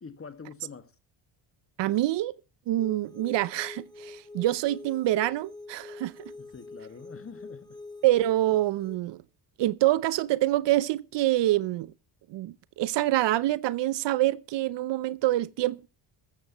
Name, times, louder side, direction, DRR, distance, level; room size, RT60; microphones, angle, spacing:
voice 1, 0.0-0.9 6.4-7.8, left 5 dB, 30° left, 1.8 m, -45 dB
voice 2, 1.8-2.3 2.7-6.3 8.0-9.2 9.6-11.9 12.3-15.9, right 15 dB, 60° right, 0.7 m, -26 dB
sound 1, 2.8-9.0, left 3 dB, 10° left, 1.3 m, -45 dB
14.5 x 14.0 x 3.0 m
supercardioid pair, 85°, 48 cm